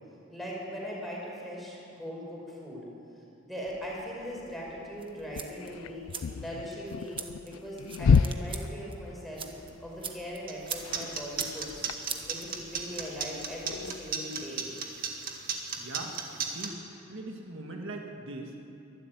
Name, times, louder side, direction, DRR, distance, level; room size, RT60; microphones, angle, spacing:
voice 1, 0.3-2.9 3.4-6.0 6.4-9.5 9.8-11.9 12.3-14.7, equal, ahead, -4 dB, 5.5 m, -40 dB
sound 1, 3.7-14.2, left 5 dB, 80° left, 0.4 m, -33 dB
sound 2, 5.0-13.0, right 6 dB, 25° right, 1.4 m, -44 dB
sound 3, 10.5-16.7, right 7 dB, 45° right, 2.0 m, -34 dB
voice 2, 15.8-16.8 17.1-18.6, right 2 dB, 65° right, 1 dB, 1.9 m, -41 dB
23.0 x 12.5 x 9.3 m, 2.8 s
head